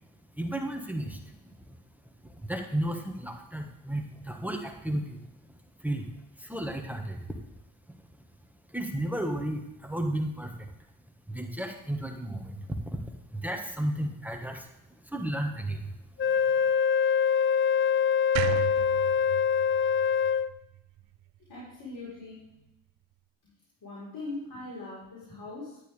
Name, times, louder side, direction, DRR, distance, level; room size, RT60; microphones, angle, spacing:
voice 1, 0.4-1.8 2.2-5.2 5.8-6.1 6.4-7.2 8.7-10.7 11.3-14.7 15.0-15.9, right 1 dB, 5° right, 3 dB, 1.7 m, -33 dB
Wind instrument woodwind instrument, 16.2-20.6, left 7 dB, 25° left, 0.4 m, -24 dB
sound 1, 18.3-21.5, right 14 dB, 75° right, 0.6 m, -36 dB
voice 2, 21.5-22.6 23.8-25.8, left 2 dB, 50° left, -6 dB, 4.5 m, -41 dB
12.0 x 9.1 x 3.5 m, 0.86 s
supercardioid pair, 65°, 47 cm